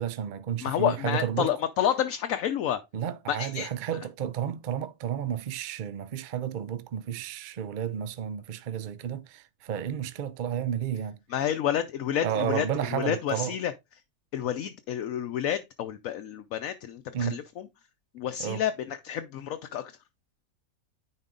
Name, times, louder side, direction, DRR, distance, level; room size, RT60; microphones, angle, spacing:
voice 1, 0.0-1.5 2.9-11.2 12.2-13.5 17.1-17.4 18.4-18.6, right 9 dB, 50° right, 0.6 m, -32 dB
voice 2, 0.6-2.8 3.3-3.7 11.3-13.7 14.3-17.7 18.1-20.0, left 10 dB, 75° left, 1.1 m, -29 dB
9.6 x 4.5 x 3.8 m
omnidirectional pair, 1.5 m